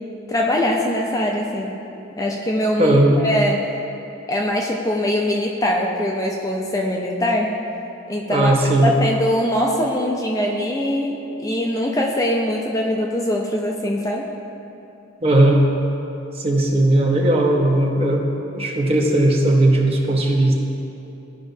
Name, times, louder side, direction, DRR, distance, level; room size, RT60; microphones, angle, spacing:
voice 1, 0.3-1.8 2.2-3.7 4.3-7.6 8.1-8.5 8.8-14.3, left 1 dB, 15° left, 0 dB, 0.4 m, -22 dB
voice 2, 2.8-3.2 8.3-8.9 15.2-15.6 16.4-18.2 18.5-20.5, right 1 dB, 30° right, -1 dB, 0.7 m, -17 dB
12.0 x 5.0 x 2.7 m, 2.9 s
head